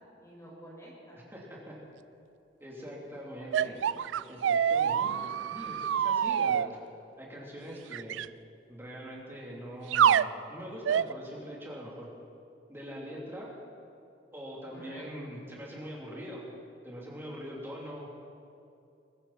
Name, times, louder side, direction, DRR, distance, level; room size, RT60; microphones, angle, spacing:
voice 1, 0.0-1.2 2.8-2.9 3.5-4.3 14.7-15.3, equal, 15° left, -5 dB, 4.8 m, -49 dB
voice 2, 1.3-1.8 2.6-3.8 4.3-6.8 7.2-8.2 8.7-12.1 12.7-13.5 14.3-16.4 16.8-18.2, equal, 15° right, -4 dB, 3.2 m, -43 dB
sound 1, 3.5-6.7 7.9-8.3 9.9-10.3 10.8-11.1, right 8 dB, 80° right, 0.3 m, -26 dB
22.5 x 13.5 x 4.3 m, 2.6 s
head